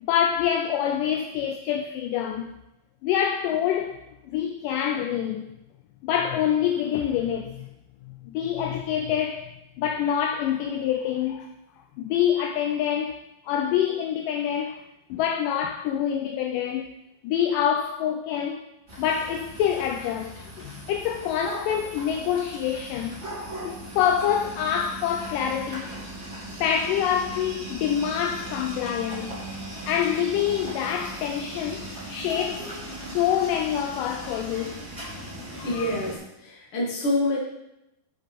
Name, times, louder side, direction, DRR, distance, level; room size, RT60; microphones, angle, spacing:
voice 1, 0.0-2.5 3.0-4.0 4.3-5.5 6.0-7.7 8.0-11.5 12.0-14.9 15.1-16.9 17.2-18.7 19.0-23.2 23.6-26.0 26.6-29.4 29.9-32.7 33.1-34.8 35.6-35.9, left 9 dB, 80° left, 1.9 m, -26 dB
sound 1, 18.9-36.2, right 1 dB, 20° right, 2.4 m, -38 dB
voice 2, 35.6-37.4, left 1 dB, 45° left, 2.1 m, -27 dB
7.8 x 5.0 x 5.2 m
omnidirectional pair, 4.2 m